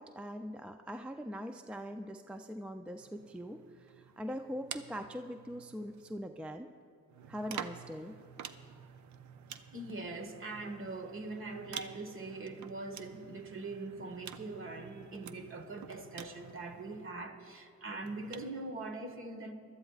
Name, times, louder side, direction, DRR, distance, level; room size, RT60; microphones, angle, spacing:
voice 1, 0.0-6.7 7.3-8.1, equal, 5° right, 7 dB, 0.4 m, -42 dB
sound 1, 3.0-6.2 7.1-17.2 18.0-18.5, right 8 dB, 70° right, 0.7 m, -49 dB
voice 2, 9.7-19.5, right 2 dB, 45° right, 5 dB, 1.5 m, -42 dB
22.5 x 13.0 x 2.4 m, 2.5 s
cardioid pair, 90°, 30 cm